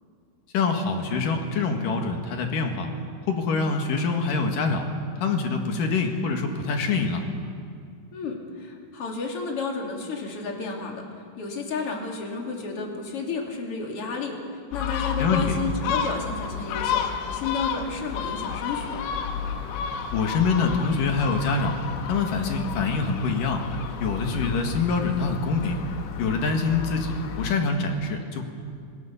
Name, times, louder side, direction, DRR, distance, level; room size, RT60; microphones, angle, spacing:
voice 1, 0.5-2.9 3.3-4.8 5.2-7.2 15.2-15.6 20.1-21.8 22.1-23.6 24.0-25.8 26.2-28.4, left 4 dB, 60° left, 4 dB, 2.9 m, -25 dB
voice 2, 8.1-11.0 11.4-19.0, left 4 dB, 35° left, 1 dB, 3.0 m, -32 dB
Gull seagull, 14.7-27.6, left 8 dB, 85° left, 3.5 m, -31 dB
27.0 x 18.0 x 7.0 m, 2.3 s
omnidirectional pair, 5.0 m